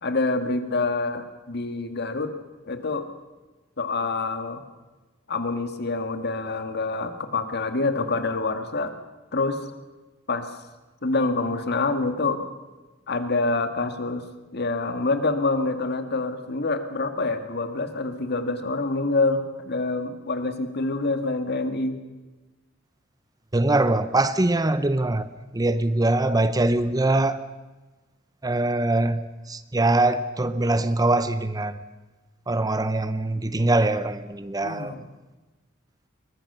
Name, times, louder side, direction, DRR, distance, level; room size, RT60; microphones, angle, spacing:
voice 1, 0.0-2.3 2.7-3.1 3.8-4.6 5.3-8.9 9.3-9.7 10.3-10.5 11.0-12.4 13.1-14.2 14.5-22.0 34.6-35.1, left 3 dB, 55° left, 8 dB, 1.9 m, -26 dB
voice 2, 23.5-25.3 25.5-27.5 28.4-31.8 32.5-35.0, right 2 dB, 20° right, 13 dB, 0.7 m, -23 dB
22.5 x 20.5 x 6.8 m, 1.2 s
head